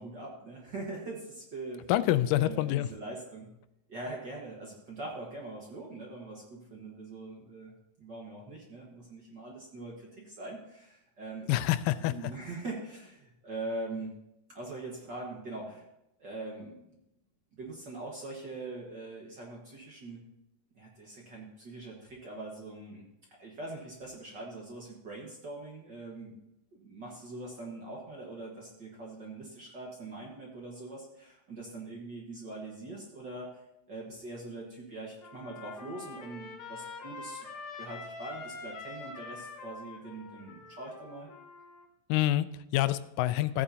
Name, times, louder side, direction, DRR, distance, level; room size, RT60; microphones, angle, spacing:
voice 1, 0.0-1.8 2.4-3.5 3.9-7.7 8.0-11.5 12.0-14.1 14.5-15.8 16.2-17.0 17.5-20.2 20.7-23.0 23.4-26.4 26.7-33.6 33.9-37.5 37.8-41.3, right 2 dB, 45° right, -2 dB, 1.5 m, -42 dB
voice 2, 1.9-2.9 11.5-12.3 42.1-43.6, left 14 dB, 90° left, 13 dB, 2.2 m, -27 dB
Trumpet, 35.2-41.9, left 4 dB, 55° left, 1.4 m, -45 dB
15.5 x 8.7 x 2.8 m, 0.87 s
omnidirectional pair, 3.7 m